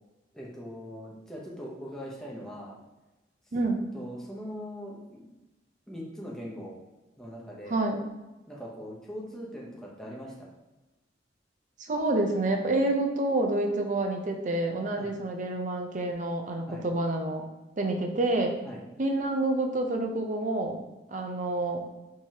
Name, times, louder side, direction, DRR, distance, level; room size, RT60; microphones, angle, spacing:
voice 1, 0.3-2.8 3.9-5.3 5.9-6.7 7.2-7.9 8.5-10.5 15.0-15.1 16.6-16.9 18.6-18.8, equal, 5° left, -5 dB, 0.8 m, -41 dB
voice 2, 3.5-3.8 7.7-8.0 11.9-17.4 17.8-18.5 19.0-20.8 21.1-21.8, right 2 dB, 45° right, 3 dB, 0.5 m, -28 dB
4.6 x 3.1 x 2.8 m, 1.1 s
head